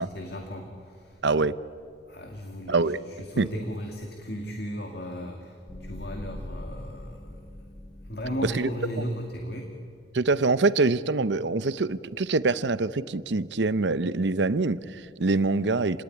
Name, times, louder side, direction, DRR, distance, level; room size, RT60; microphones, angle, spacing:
voice 1, 0.0-1.2 2.1-7.5 8.0-9.7, equal, 55° left, 2 dB, 2.4 m, -36 dB
voice 2, 1.2-1.6 2.7-3.0 3.4-3.5 8.4-8.7 10.1-16.0, right 3 dB, 70° right, 15 dB, 0.7 m, -25 dB
sound 1, 5.7-8.8, left 1 dB, 35° left, 1.2 m, -41 dB
29.0 x 19.0 x 9.8 m, 2.3 s
head